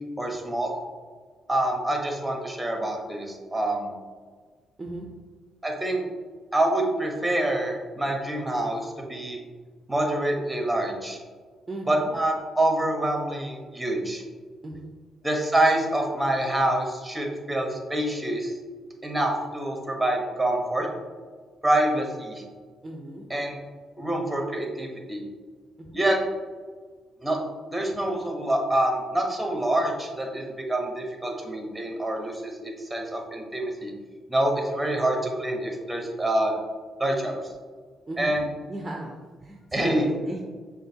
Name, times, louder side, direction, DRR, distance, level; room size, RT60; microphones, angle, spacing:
voice 1, 0.2-0.7 1.5-3.9 5.6-6.0 6.5-9.4 9.9-11.2 11.9-14.2 15.2-18.5 19.0-20.9 21.6-22.4 23.3-23.6 24.0-25.2 25.9-26.2 27.2-27.4 27.7-33.9 34.3-36.6 37.0-37.4 38.2-38.4 39.7-40.0, right 1 dB, 5° right, 1 dB, 1.0 m, -26 dB
voice 2, 4.8-5.1 11.7-12.1 14.6-14.9 22.8-23.3 25.8-26.0 38.1-38.3 38.7-40.4, right 1 dB, 25° right, 0 dB, 0.5 m, -36 dB
6.3 x 2.5 x 2.8 m, 1.5 s
cardioid pair, 90°, 0 cm